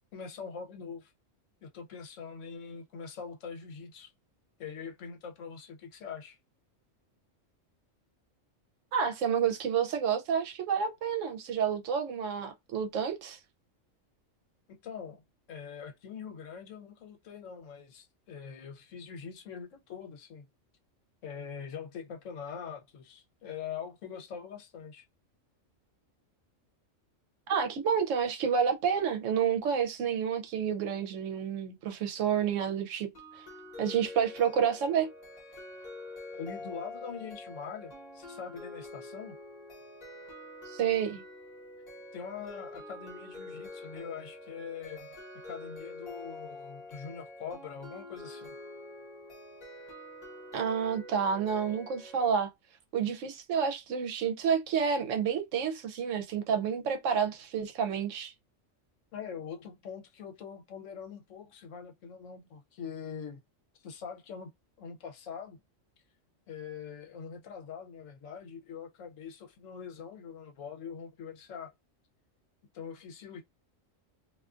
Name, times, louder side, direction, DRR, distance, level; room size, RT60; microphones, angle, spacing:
voice 1, 0.1-1.1 1.6-4.1 4.6-6.4 14.7-15.2 15.5-20.4 21.2-25.0 36.3-39.4 42.1-45.1 45.4-48.5 59.1-63.4 63.8-64.5 64.8-65.6 66.5-71.7 72.7-73.4, left 6 dB, 75° left, 1.0 m, -43 dB
voice 2, 8.9-13.4 27.5-33.4 33.8-35.1 40.7-41.2 50.5-52.5 52.9-58.3, right 7 dB, 75° right, 0.9 m, -29 dB
sound 1, 33.1-52.3, left 2 dB, 35° left, 1.0 m, -46 dB
2.5 x 2.4 x 2.3 m
omnidirectional pair, 1.4 m